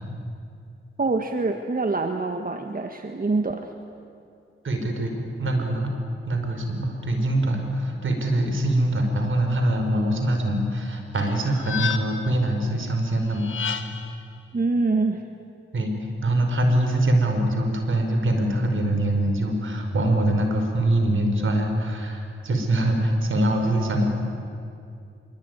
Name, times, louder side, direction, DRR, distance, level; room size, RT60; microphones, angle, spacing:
voice 1, 1.0-3.7 14.5-15.2, right 3 dB, 40° right, 5 dB, 1.7 m, -25 dB
voice 2, 4.6-5.1 5.4-6.0 6.2-13.5 15.7-15.9 16.2-24.1, right 1 dB, 70° right, 4 dB, 5.1 m, -23 dB
sound 1, 11.1-12.4 13.3-14.2, left 7 dB, 70° left, 1.6 m, -31 dB
26.0 x 23.5 x 9.7 m, 2.5 s
cardioid pair, 65°, 21 cm